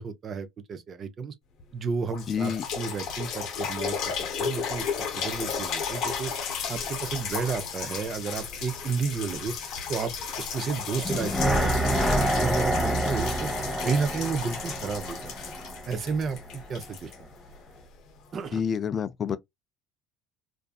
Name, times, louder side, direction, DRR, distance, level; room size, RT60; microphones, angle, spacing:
voice 1, 0.0-1.3 1.7-4.9 5.2-6.3 6.7-9.5 9.9-10.1 10.4-13.5 13.8-15.3 15.9-17.3 18.3-18.6, right 5 dB, 40° right, 0.5 m, -32 dB
sound 1, 1.6-1.7 2.1-17.8 18.5-18.6, left 6 dB, 60° left, 0.7 m, -34 dB
voice 2, 2.3-2.7 18.5-19.4, left 7 dB, 35° left, 0.3 m, -28 dB
sound 2, 11.0-16.2 16.5-16.6, right 1 dB, ahead, 0.6 m, -27 dB
2.6 x 2.3 x 2.2 m
supercardioid pair, 100°, 0 cm